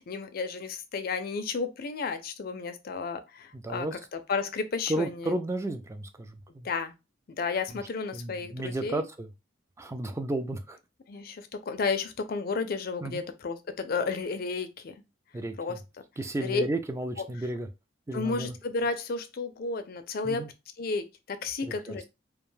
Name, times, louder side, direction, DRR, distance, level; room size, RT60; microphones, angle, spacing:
voice 1, 0.0-3.9 4.3-5.3 6.6-6.9 7.4-9.0 11.1-14.9 15.6-15.8 16.4-16.6 18.1-20.5 20.8-22.1, left 4 dB, 50° left, 0.4 m, -32 dB
voice 2, 3.5-4.0 4.9-6.7 7.7-7.8 8.1-9.3 9.8-10.8 13.0-13.2 15.3-15.8 16.2-17.7 18.1-18.5 20.2-20.5 21.9-22.0, right 1 dB, 15° right, 0.3 m, -33 dB
2.4 x 2.2 x 3.1 m
head